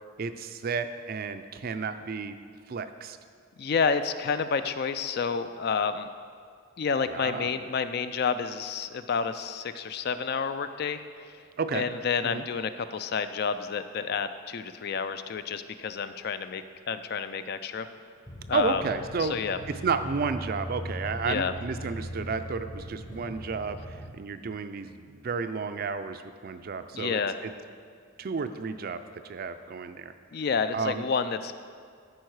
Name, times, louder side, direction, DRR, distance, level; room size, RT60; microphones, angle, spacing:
voice 1, 0.2-2.4 2.7-3.2 7.1-7.5 11.6-11.9 12.2-12.4 18.5-19.4 19.7-27.5 28.2-30.1 30.7-31.1, right 4 dB, 45° right, 10 dB, 0.4 m, -32 dB
voice 2, 3.6-6.1 6.8-11.0 11.7-17.9 18.5-18.8 19.2-19.6 21.2-21.5 26.9-27.4 30.3-31.5, left 5 dB, 45° left, 11 dB, 0.3 m, -29 dB
sound 1, 18.3-24.1, equal, 20° left, 0.7 m, -40 dB
13.5 x 4.7 x 4.7 m, 2.1 s
head